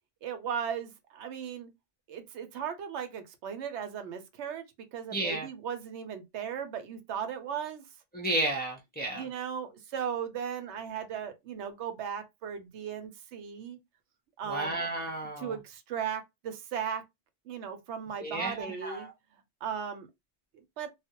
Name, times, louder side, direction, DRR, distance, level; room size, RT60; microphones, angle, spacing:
voice 1, 0.2-1.7 2.1-4.7 4.9-7.8 9.1-13.8 14.4-14.8 15.4-17.0 17.5-19.1 19.6-20.1 20.8-20.9, right 8 dB, 85° right, 0.9 m, -37 dB
voice 2, 5.1-5.5 8.1-9.3 14.4-15.6 18.2-19.1, right 1 dB, 15° left, 0.4 m, -32 dB
2.4 x 2.0 x 2.7 m
omnidirectional pair, 1.1 m